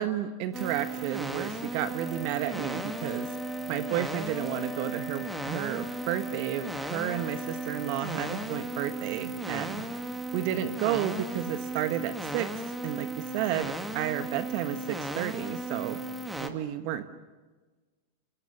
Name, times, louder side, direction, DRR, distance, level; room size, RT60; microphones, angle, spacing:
voice 1, 0.0-3.3 3.7-9.8 10.3-16.0 16.4-17.0, right 12 dB, 50° right, 9 dB, 1.4 m, -32 dB
sound 1, 0.5-16.5, right 3 dB, 5° right, 2.3 m, -36 dB
Wind instrument woodwind instrument, 2.0-8.6, left 6 dB, 30° left, 1.0 m, -44 dB
28.5 x 19.5 x 7.2 m, 1.3 s
hypercardioid pair, 100°, 0 cm